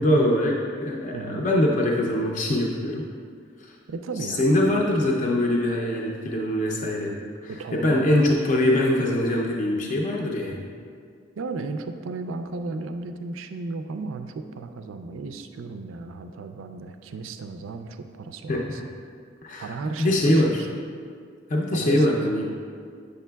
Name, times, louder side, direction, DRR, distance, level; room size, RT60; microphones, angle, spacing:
voice 1, 0.0-3.0 3.6-3.7 4.2-10.7 18.5-18.8 19.4-20.6 21.5-22.5, left 1 dB, 40° left, -2 dB, 0.5 m, -23 dB
voice 2, 1.1-1.5 3.9-4.8 7.5-8.2 11.4-18.8 19.6-20.7 21.7-22.3, right 3 dB, 85° right, 8 dB, 0.4 m, -35 dB
8.2 x 6.7 x 2.2 m, 2.2 s
head